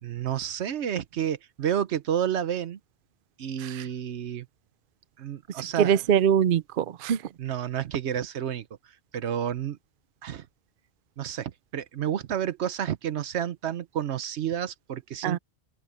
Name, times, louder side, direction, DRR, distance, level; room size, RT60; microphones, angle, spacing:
voice 1, 0.0-2.8 3.4-4.5 5.2-6.0 7.4-8.7 9.1-9.8 10.2-10.5 11.2-15.4, right 9 dB, 75° right, 1.1 m, -30 dB
voice 2, 5.8-7.2 15.2-15.4, right 8 dB, 60° right, 0.7 m, -23 dB
open air
omnidirectional pair, 1.2 m